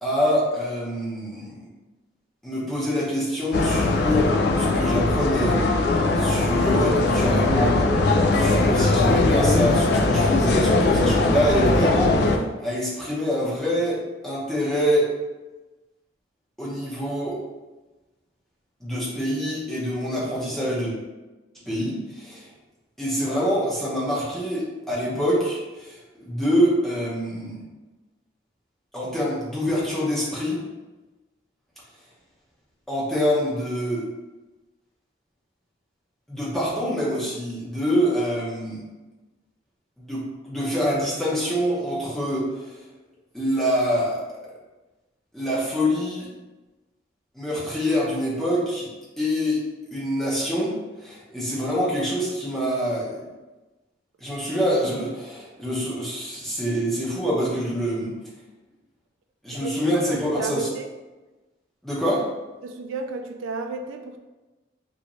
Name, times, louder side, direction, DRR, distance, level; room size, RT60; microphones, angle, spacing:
voice 1, 0.0-1.6 2.4-5.6 6.2-7.9 8.3-14.0 14.2-15.1 16.6-17.4 18.8-20.9 21.7-22.5 23.0-27.6 28.9-30.6 32.9-34.0 36.3-38.8 40.0-42.7 43.3-44.2 45.3-46.3 47.3-48.9 49.2-50.7 51.0-53.2 54.2-58.1 59.4-60.7 61.8-62.3, equal, ahead, -8 dB, 0.8 m, -25 dB
sound 1, 3.5-12.4, left 2 dB, 55° left, 0.3 m, -20 dB
voice 2, 59.5-60.9 62.6-64.2, right 4 dB, 90° right, 5 dB, 0.3 m, -32 dB
3.1 x 2.6 x 3.0 m, 1.2 s
head